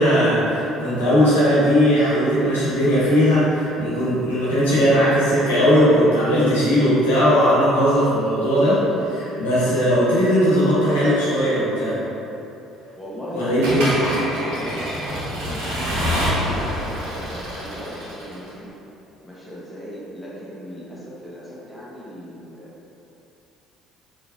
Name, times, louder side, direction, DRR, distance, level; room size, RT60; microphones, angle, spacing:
voice 1, 0.0-12.0 13.3-13.9, equal, 80° left, -10 dB, 1.0 m, -18 dB
voice 2, 13.0-13.9 14.3-18.7 19.2-22.7, equal, 10° left, -8 dB, 1.2 m, -37 dB
Accelerating revving vroom / Mechanisms, 13.6-18.5, equal, 65° right, 1.2 m, -26 dB
sound 1, 14.1-17.9, equal, 45° right, 1.2 m, -38 dB
4.3 x 2.9 x 2.7 m, 2.9 s
figure-of-eight pair, 55°, 0 cm